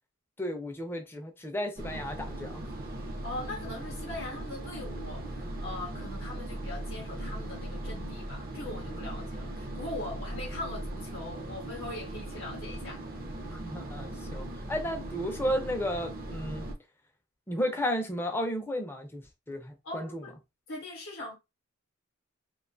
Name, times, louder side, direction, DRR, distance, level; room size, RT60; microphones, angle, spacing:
voice 1, 0.4-2.6 13.4-16.7 17.5-20.2, equal, 10° left, 0.4 m, -33 dB
sound 1, 1.8-16.7, right 1 dB, 45° right, 0.5 m, -39 dB
voice 2, 3.2-13.0 19.8-20.3 20.7-21.4, left 2 dB, 70° left, 0.6 m, -41 dB
2.5 x 2.2 x 2.5 m
head